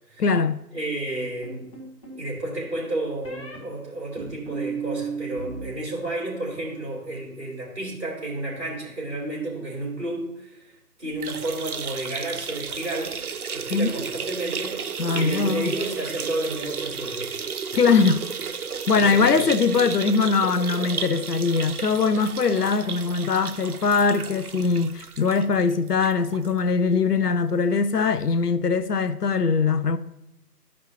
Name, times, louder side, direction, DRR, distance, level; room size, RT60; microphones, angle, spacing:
voice 1, 0.2-0.6 13.7-13.9 15.0-15.7 17.7-18.2 18.9-30.0, left 5 dB, 70° left, 0.6 m, -21 dB
voice 2, 0.7-1.7 2.1-13.2 13.5-14.7 15.1-17.4 18.9-19.5, right 2 dB, 40° right, 3.1 m, -31 dB
sound 1, 1.4-2.2 3.2-3.6 4.2-5.7 6.0-6.6, right 6 dB, 20° left, 1.7 m, -34 dB
sound 2, 11.1-26.5 26.9-27.0 27.3-27.4 28.4-28.5, right 6 dB, 65° right, 0.5 m, -33 dB
12.5 x 5.3 x 2.8 m
figure-of-eight pair, 160°, 49 cm